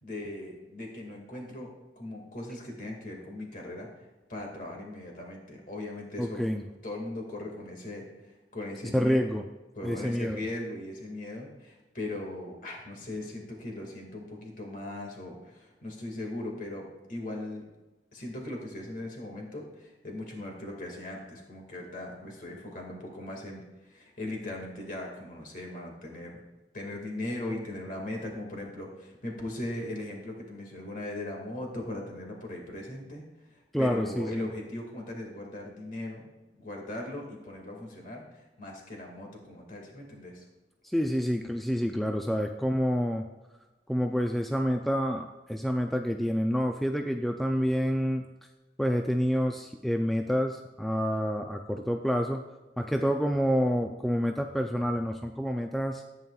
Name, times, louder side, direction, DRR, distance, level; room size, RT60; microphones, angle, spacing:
voice 1, 0.0-6.4 6.8-9.2 9.8-17.6 18.1-26.4 26.7-33.2 33.5-36.3 36.6-40.4 52.8-53.1, left 1 dB, 50° left, 0 dB, 2.0 m, -39 dB
voice 2, 6.2-6.7 8.9-9.4 9.8-10.4 33.7-34.5 40.8-43.3 43.9-48.3 48.8-52.4 52.8-56.0, equal, ahead, 3 dB, 0.3 m, -28 dB
14.0 x 9.0 x 2.3 m, 1.1 s
head